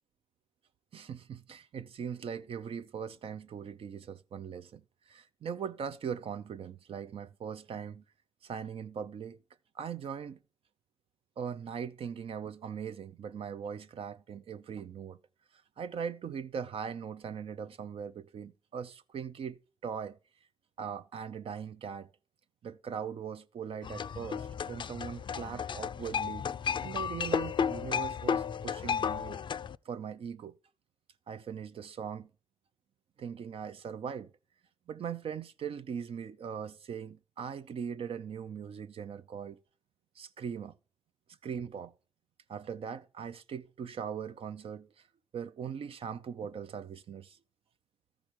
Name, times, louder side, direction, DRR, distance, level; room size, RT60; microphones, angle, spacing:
voice 1, 0.9-8.0 8.4-9.4 9.7-10.4 11.4-15.2 15.8-20.2 20.8-22.1 22.6-26.5 26.8-29.4 29.8-30.6 31.3-32.3 33.2-34.3 34.9-39.6 40.2-40.7 41.4-41.9 42.5-44.9 45.3-47.4, right 7 dB, 75° right, 0.6 m, -40 dB
sound 1, 23.8-29.8, left 7 dB, 55° left, 0.4 m, -33 dB
13.5 x 5.1 x 4.5 m
cardioid pair, 70°, 10 cm